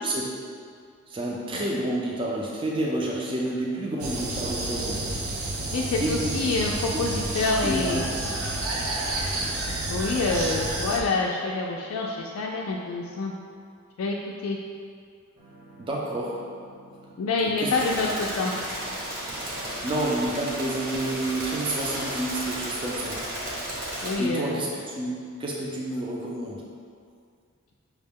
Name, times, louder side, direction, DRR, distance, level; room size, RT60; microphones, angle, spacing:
voice 1, 1.1-5.1 6.0-6.4 6.9-7.1 7.4-8.2 15.8-16.4 17.4-17.7 19.8-23.2 24.2-26.6, right 1 dB, 25° right, -3 dB, 0.4 m, -29 dB
sound 1, 4.0-11.0, right 2 dB, 85° right, 0.5 m, -30 dB
voice 2, 5.7-8.0 9.9-13.3 14.0-14.2 14.4-14.6 17.2-18.5 24.0-24.6, left 3 dB, 85° left, -2 dB, 0.3 m, -27 dB
sound 2, 15.4-21.5, right 2 dB, 60° right, 1.4 m, -51 dB
sound 3, 17.7-24.1, right 1 dB, 40° right, 0.9 m, -33 dB
5.8 x 2.1 x 3.5 m, 2.2 s
head